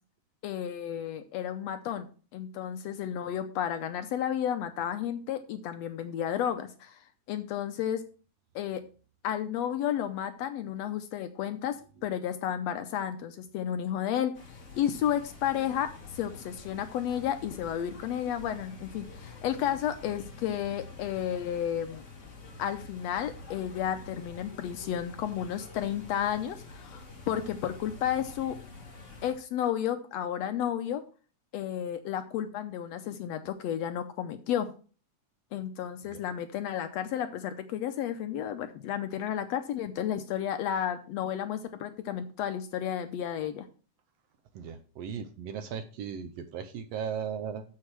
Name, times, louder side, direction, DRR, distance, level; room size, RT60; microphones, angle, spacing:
voice 1, 0.4-8.0 8.5-8.8 9.2-11.8 12.0-14.3 14.8-22.0 22.6-28.6 29.2-31.0 31.5-34.7 35.5-43.7, left 10 dB, 75° left, 8 dB, 1.7 m, -32 dB
sound 1, 14.3-29.3, left 3 dB, 30° left, 1.5 m, -47 dB
voice 2, 44.5-47.6, right 7 dB, 70° right, 9 dB, 1.6 m, -37 dB
7.2 x 6.6 x 5.9 m, 0.37 s
omnidirectional pair, 3.4 m